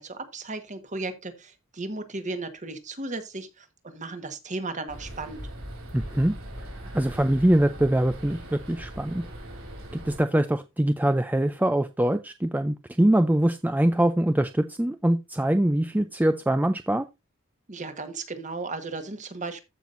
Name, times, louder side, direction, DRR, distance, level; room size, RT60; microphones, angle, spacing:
voice 1, 0.0-5.4 17.7-19.6, right 3 dB, 35° right, 1.5 m, -35 dB
sound 1, 4.9-10.2, right 1 dB, 65° right, 4.3 m, -40 dB
voice 2, 5.9-6.4 6.9-9.2 9.9-17.0, right 1 dB, 10° right, 0.4 m, -23 dB
14.5 x 6.0 x 2.6 m
head